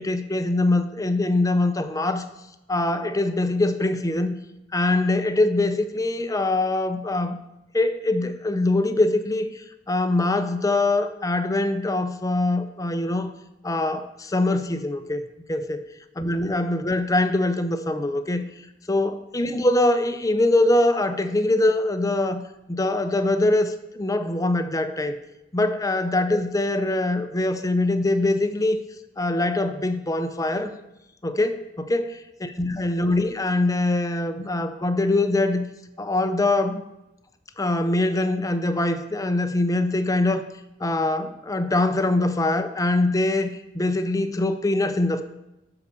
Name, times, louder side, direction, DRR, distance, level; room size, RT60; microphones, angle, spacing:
voice 1, 0.0-2.2 2.7-4.3 4.7-7.4 7.7-13.3 13.6-15.2 15.5-15.8 16.2-18.5 18.9-22.4 22.7-25.1 25.5-28.8 29.2-30.7 31.2-32.0 32.4-35.7 36.0-36.8 37.6-40.4 40.8-45.2, left 2 dB, 15° left, 9 dB, 0.6 m, -23 dB
12.0 x 4.9 x 6.7 m, 0.94 s
head